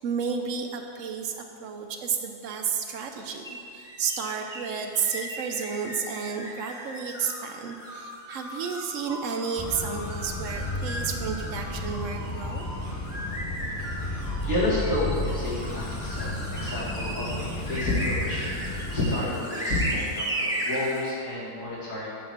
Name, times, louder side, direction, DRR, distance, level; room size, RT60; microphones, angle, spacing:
voice 1, 0.0-12.7, right 6 dB, 65° right, 4 dB, 0.9 m, -32 dB
sound 1, 3.4-21.1, right 1 dB, 5° right, 1.1 m, -36 dB
sound 2, 9.6-19.1, left 1 dB, 25° left, 0.3 m, -33 dB
voice 2, 13.7-22.1, left 2 dB, 55° left, -9 dB, 2.7 m, -30 dB
9.1 x 3.9 x 6.3 m, 2.5 s
omnidirectional pair, 1.6 m